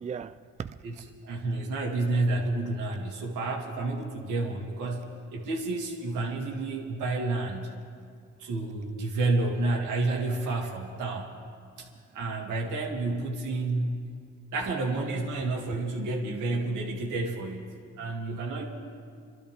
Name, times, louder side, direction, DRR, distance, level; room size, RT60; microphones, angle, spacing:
voice 1, 0.0-1.0 1.4-1.5 11.9-12.2, right 6 dB, 25° right, 0.4 m, -39 dB
voice 2, 1.2-7.7 8.4-11.3 11.8-11.9 12.1-14.0 14.5-18.6, right 2 dB, 85° right, 2.5 m, -30 dB
28.5 x 12.5 x 3.5 m
cardioid pair, 90°, 30 cm